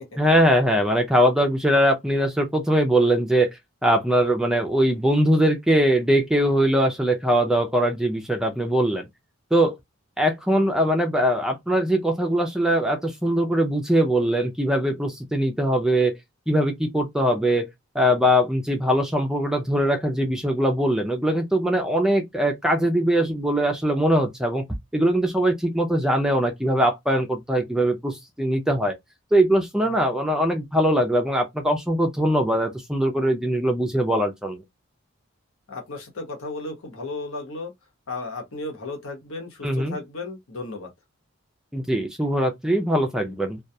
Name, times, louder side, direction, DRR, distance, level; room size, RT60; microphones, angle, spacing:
voice 1, 0.2-9.0 9.5-9.8 10.2-16.1 16.5-17.7 17.9-24.6 24.9-29.0 29.3-34.6 39.6-40.0 41.7-43.6, equal, 5° right, 0.3 m, -21 dB
voice 2, 35.7-37.7 38.1-40.9, left 2 dB, 75° left, 0.9 m, -34 dB
2.2 x 2.1 x 2.6 m
head